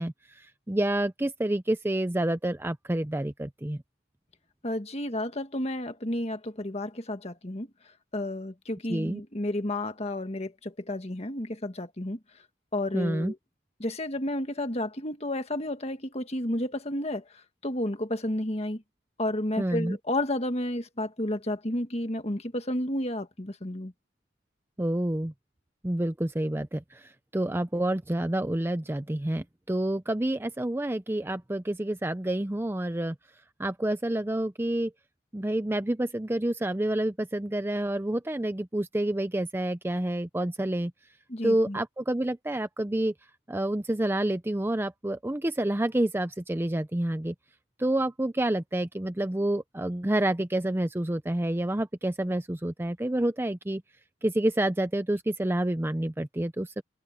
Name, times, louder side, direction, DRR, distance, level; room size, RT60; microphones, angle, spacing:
voice 1, 0.0-3.8 8.9-9.2 12.9-13.3 19.6-20.0 24.8-25.3 25.8-33.1 33.6-34.9 35.3-40.9 41.4-43.1 43.5-47.3 47.8-53.8 54.2-56.8, right 1 dB, 10° right, 0.5 m, -28 dB
voice 2, 4.6-7.7 8.1-12.2 12.7-13.4 13.8-18.8 19.2-23.9 41.3-41.8, left 1 dB, 30° left, 1.7 m, -31 dB
head